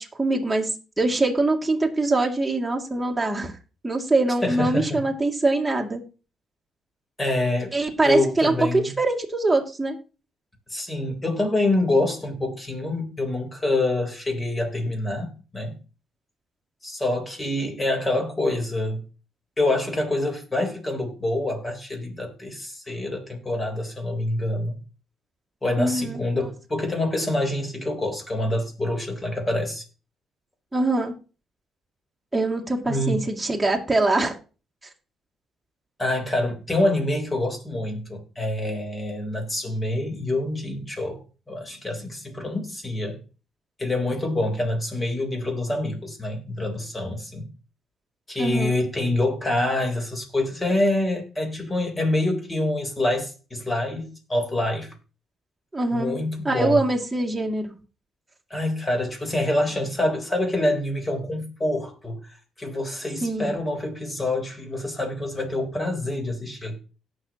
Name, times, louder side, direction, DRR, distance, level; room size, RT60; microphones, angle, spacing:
voice 1, 0.0-3.5 3.8-6.0 7.7-10.0 25.8-26.2 30.7-31.1 32.3-34.4 48.4-48.8 55.7-56.2 56.4-57.7 63.2-63.5, right 2 dB, 10° right, 2.5 m, -23 dB
voice 2, 4.4-5.0 7.2-7.7 8.0-8.9 10.7-15.8 16.8-19.0 19.6-24.8 25.6-29.8 32.9-33.2 36.0-43.2 43.8-47.4 48.3-54.9 55.9-56.8 58.5-62.2 62.6-66.8, left 1 dB, 20° left, 3.7 m, -26 dB
17.5 x 6.4 x 2.9 m
cardioid pair, 90°, 0 cm